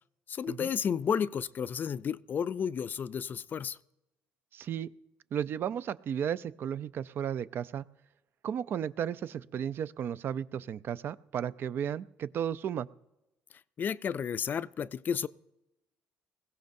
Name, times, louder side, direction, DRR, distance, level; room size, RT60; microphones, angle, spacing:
voice 1, 0.3-3.8 13.8-15.3, left 7 dB, 45° left, 17 dB, 0.4 m, -32 dB
voice 2, 4.5-4.9 5.3-7.9 8.4-12.9, right 9 dB, 55° right, 16 dB, 0.4 m, -34 dB
21.0 x 16.0 x 2.6 m, 0.95 s
supercardioid pair, 80°, 4 cm